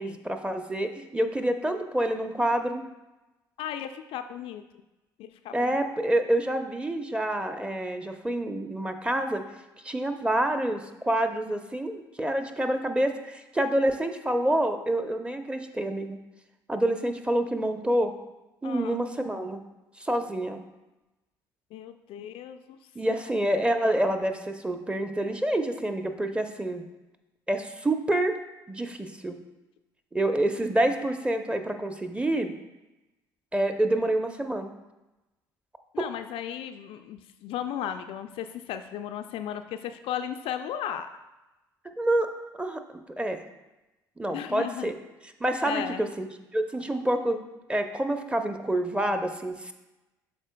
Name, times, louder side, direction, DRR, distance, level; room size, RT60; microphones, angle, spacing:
voice 1, 0.0-2.8 5.5-9.4 9.8-16.2 16.7-18.1 18.6-19.6 20.0-20.6 22.9-26.8 27.5-28.3 28.7-29.4 30.1-32.5 33.5-34.7 36.0-36.1 41.8-42.3 42.5-42.8 43.2-43.4 44.2-44.9 45.4-46.3 46.5-47.4 47.7-49.7, right 1 dB, 10° right, 7 dB, 0.7 m, -27 dB
voice 2, 3.6-4.6 5.2-5.8 18.6-19.0 21.7-22.8 23.2-23.3 35.9-41.1 44.3-44.9 45.6-46.0, left 10 dB, 55° left, 8 dB, 0.4 m, -35 dB
12.0 x 4.3 x 2.3 m, 1.0 s
figure-of-eight pair, 50°, 11 cm